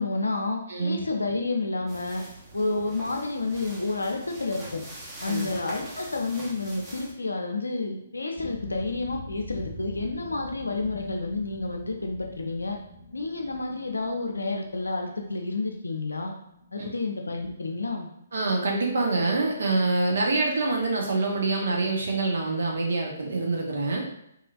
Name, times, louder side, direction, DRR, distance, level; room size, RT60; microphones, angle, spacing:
voice 1, 0.0-2.2 2.5-4.8 5.2-12.8 13.1-16.3 16.7-18.1, left 3 dB, 80° left, 2 dB, 0.5 m, -30 dB
sound 1, 1.9-7.1, right 1 dB, 15° right, 0.6 m, -43 dB
sound 2, 8.4-18.5 18.8-19.6 20.0-20.1, left 2 dB, 20° left, 0.7 m, -44 dB
voice 2, 18.3-24.0, right 3 dB, 65° right, -1 dB, 0.7 m, -25 dB
2.9 x 2.4 x 2.3 m, 0.78 s
figure-of-eight pair, 130°, 0 cm